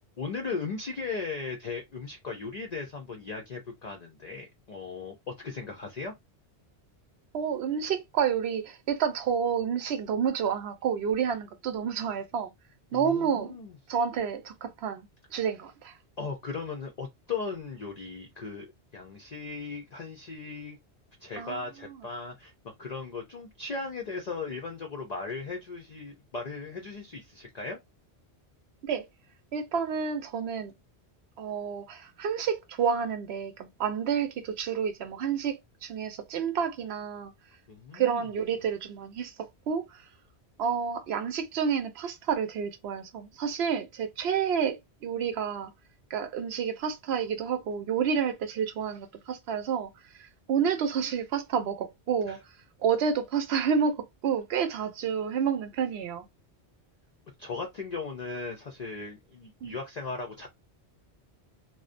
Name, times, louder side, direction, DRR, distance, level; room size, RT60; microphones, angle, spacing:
voice 1, 0.2-6.1 12.9-13.7 16.2-18.7 18.9-20.8 21.2-27.8 37.7-38.2 52.3-52.4 57.4-60.5, left 4 dB, 55° left, 0.5 m, -37 dB
voice 2, 7.3-12.5 12.9-13.6 13.9-16.0 21.4-21.6 21.9-22.0 28.8-29.1 29.5-30.7 31.4-35.6 35.8-37.3 37.9-39.3 39.7-40.0 40.6-45.7 46.1-49.9 50.2-52.4 52.8-56.3 59.6-59.8, right 7 dB, 75° right, 0.8 m, -29 dB
2.5 x 2.1 x 2.4 m
omnidirectional pair, 1.1 m